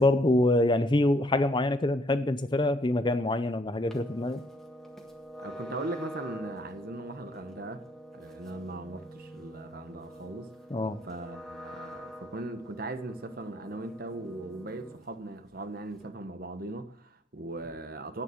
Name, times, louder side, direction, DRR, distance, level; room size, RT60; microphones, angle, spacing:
voice 1, 0.0-4.4 10.7-11.0, left 2 dB, 25° left, 0.6 m, -25 dB
sound 1, 3.9-15.2 15.5-16.1, right 1 dB, ahead, 1.6 m, -46 dB
voice 2, 5.4-10.5 11.0-18.2, right 2 dB, 50° right, 1.1 m, -39 dB
10.0 x 9.7 x 7.7 m
head